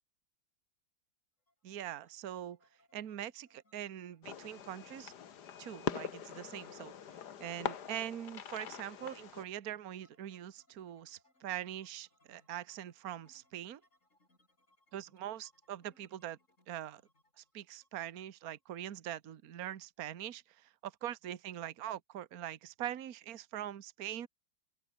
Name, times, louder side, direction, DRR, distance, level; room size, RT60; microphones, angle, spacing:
sound 1, 1.5-19.2, left 1 dB, 40° left, 7.9 m, -73 dB
voice 1, 1.6-2.6 2.9-5.1 5.6-6.9 7.4-13.8 14.9-16.4 16.7-17.0 17.4-24.3, right 11 dB, 55° right, 1.5 m, -43 dB
Fireworks, 4.2-9.4, left 8 dB, 60° left, 1.8 m, -43 dB
open air
omnidirectional pair, 2.1 m